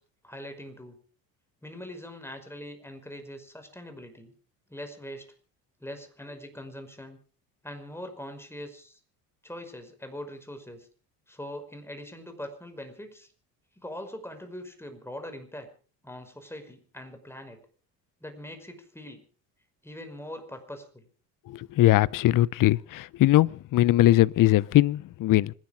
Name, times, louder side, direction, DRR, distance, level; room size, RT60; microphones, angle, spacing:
voice 1, 0.2-1.0 1.6-4.3 4.7-5.3 5.8-7.2 7.6-9.0 9.4-10.9 11.3-13.3 13.8-15.7 16.0-17.6 18.2-19.2 19.8-21.1, left 1 dB, 5° left, 5.5 m, -42 dB
voice 2, 21.5-25.5, left 15 dB, 45° left, 0.7 m, -21 dB
26.0 x 11.0 x 5.0 m
hypercardioid pair, 70°, 47 cm